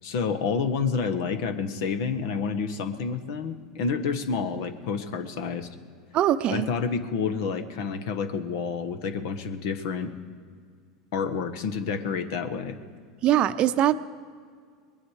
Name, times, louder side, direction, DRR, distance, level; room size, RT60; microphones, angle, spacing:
voice 1, 0.0-5.7 6.5-10.1 11.1-12.8, left 5 dB, 65° left, 10 dB, 1.2 m, -29 dB
voice 2, 6.1-6.7 13.2-14.0, right 11 dB, 45° right, 12 dB, 0.7 m, -22 dB
21.0 x 10.0 x 4.9 m, 2.1 s
hypercardioid pair, 85°, 2 cm